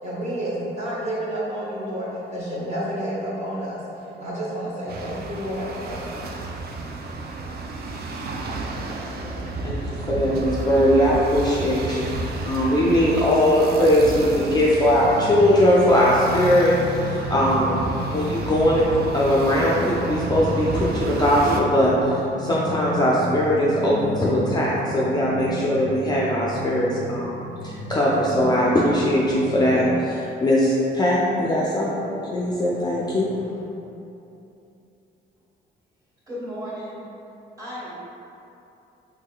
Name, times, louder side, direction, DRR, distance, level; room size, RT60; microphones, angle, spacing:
voice 1, 0.0-3.8 4.2-6.2, right 1 dB, 35° right, -8 dB, 0.9 m, -30 dB
sound 1, 4.9-21.6, right 3 dB, 50° right, 0.4 m, -32 dB
voice 2, 10.1-12.1 12.4-17.8 18.1-27.4 27.6-33.6, equal, 20° left, -6 dB, 0.4 m, -20 dB
sound 2, 14.8-30.0, equal, 80° right, 0.7 m, -32 dB
voice 3, 36.3-37.0 37.6-38.0, equal, 20° right, -9 dB, 1.5 m, -34 dB
3.6 x 3.1 x 2.2 m, 2.9 s
cardioid pair, 90°, 20 cm